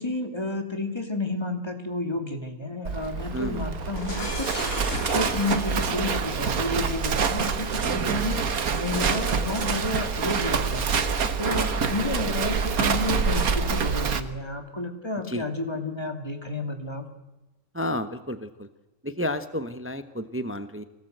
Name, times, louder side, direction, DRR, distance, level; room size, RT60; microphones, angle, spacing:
voice 1, 0.0-8.4 8.7-10.9 11.4-17.0, left 2 dB, 20° left, 4 dB, 2.5 m, -31 dB
sound 1, 2.8-13.2, right 2 dB, 30° right, 1.9 m, -44 dB
Livestock farm animals working animals, 2.8-14.2, right 5 dB, 80° right, 1.7 m, -26 dB
voice 2, 3.3-3.7 8.0-8.2 11.4-11.8 12.2-12.3 15.3-15.4 17.7-18.7 19.0-20.8, left 1 dB, 10° right, 10 dB, 0.8 m, -32 dB
Shatter, 4.0-11.3, left 1 dB, 70° left, 4.5 m, -39 dB
24.5 x 18.0 x 8.0 m, 1.0 s
omnidirectional pair, 1.5 m